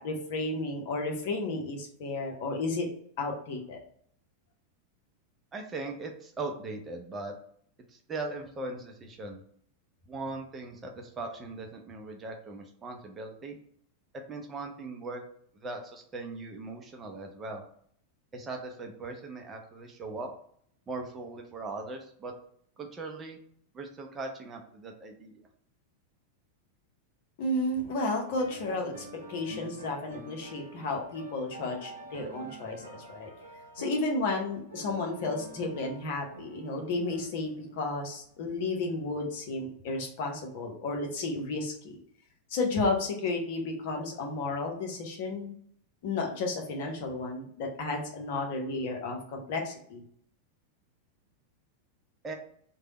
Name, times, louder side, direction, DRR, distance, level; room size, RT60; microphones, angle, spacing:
voice 1, 0.0-2.9 3.2-3.8 27.4-33.3 33.8-42.0 42.5-45.6 46.0-50.0, left 2 dB, 50° left, 1 dB, 0.8 m, -32 dB
voice 2, 5.5-7.3 8.1-9.4 10.1-13.6 14.1-15.2 15.6-17.6 18.3-20.3 20.9-22.3 22.8-23.4 23.7-25.3 52.2-52.3, right 3 dB, 20° right, 2 dB, 0.6 m, -39 dB
sound 1, 28.3-39.6, right 2 dB, 80° right, 0.7 m, -48 dB
3.3 x 2.2 x 4.0 m, 0.63 s
figure-of-eight pair, 90°, 0 cm